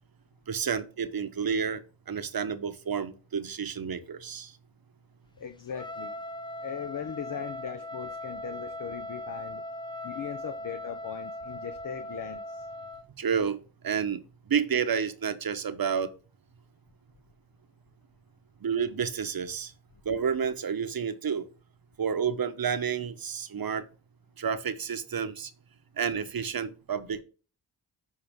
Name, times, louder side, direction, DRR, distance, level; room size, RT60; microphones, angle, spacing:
voice 1, 0.5-4.5 13.2-13.6 13.8-14.2 14.5-16.1 18.6-19.7 20.0-21.5 22.0-23.8 24.4-25.5 26.0-27.2, right 7 dB, 50° right, 1.1 m, -30 dB
voice 2, 5.4-6.2 6.6-9.6 10.0-12.7, left 8 dB, 45° left, 0.8 m, -39 dB
Trumpet, 5.7-13.1, left 1 dB, 10° left, 0.7 m, -39 dB
10.5 x 4.0 x 3.6 m
cardioid pair, 55°, 46 cm